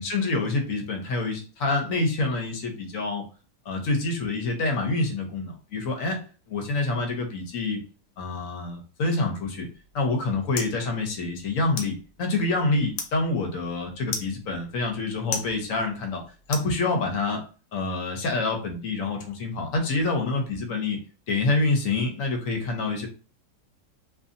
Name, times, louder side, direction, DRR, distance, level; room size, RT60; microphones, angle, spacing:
voice 1, 0.0-3.2 3.7-6.2 6.5-7.8 8.2-9.7 9.9-16.2 16.5-17.4 17.7-21.0 21.3-23.1, left 3 dB, 60° left, 4 dB, 1.0 m, -27 dB
sound 1, 9.7-17.3, left 5 dB, 80° left, 1.2 m, -39 dB
2.6 x 2.6 x 2.5 m, 0.37 s
omnidirectional pair, 1.7 m